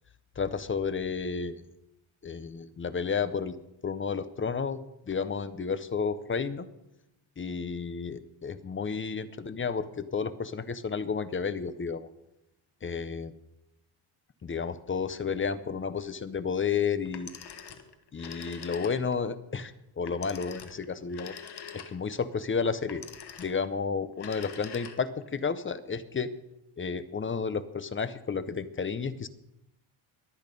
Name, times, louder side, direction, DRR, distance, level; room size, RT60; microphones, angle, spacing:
voice 1, 0.4-1.6 2.2-3.5 3.8-4.8 5.1-6.7 7.4-12.1 12.8-13.3 14.4-17.3 18.1-21.3 21.7-23.0 23.4-26.3 26.8-29.3, left 5 dB, 25° left, 14 dB, 0.6 m, -31 dB
Telephone, 17.1-19.3 20.1-22.2 22.9-23.7 24.1-25.3, left 7 dB, 50° left, 1.5 m, -44 dB
23.0 x 8.7 x 5.3 m, 0.88 s
cardioid pair, 155°, 49 cm